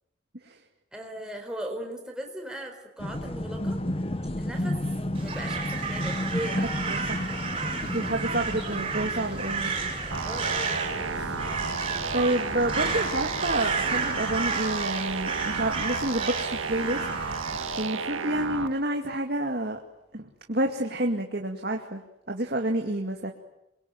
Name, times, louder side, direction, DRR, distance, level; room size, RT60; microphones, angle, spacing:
voice 1, 0.9-4.0 4.4-4.8 5.2-6.6 10.3-11.3, right 1 dB, 5° right, 2 dB, 4.5 m, -38 dB
sound 1, 3.0-14.4, left 1 dB, 30° left, 1.1 m, -34 dB
Crow, 5.1-17.8, right 5 dB, 25° right, 6.0 m, -32 dB
voice 2, 6.9-7.4 7.8-9.7 11.8-17.0 17.8-19.8 20.1-22.0 22.3-23.3, right 1 dB, 50° right, 3 dB, 2.2 m, -29 dB
sound 2, 10.1-18.7, right 4 dB, 80° right, 1.8 m, -32 dB
27.5 x 23.0 x 9.3 m, 0.86 s
head